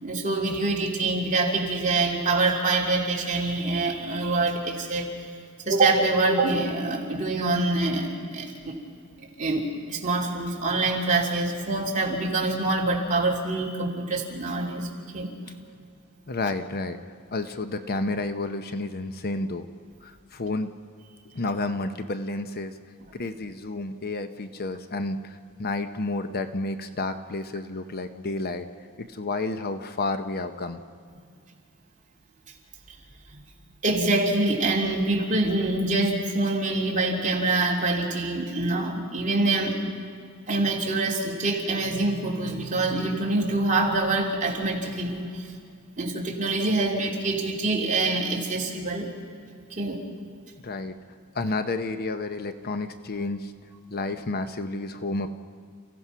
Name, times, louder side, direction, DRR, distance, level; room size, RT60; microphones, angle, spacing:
voice 1, 0.0-5.1 5.7-8.8 9.2-14.9 15.1-15.3 31.1-31.2 33.3-33.4 33.8-39.8 40.5-45.5 46.0-49.1 49.7-50.0, right 2 dB, 35° right, -2 dB, 3.1 m, -25 dB
voice 2, 16.3-17.0 17.3-19.7 20.0-20.7 21.3-22.7 23.1-28.7 29.0-30.8 50.6-50.9 51.3-53.5 53.9-55.3, left 2 dB, 45° left, 9 dB, 0.8 m, -30 dB
29.5 x 16.0 x 5.7 m, 2.3 s
head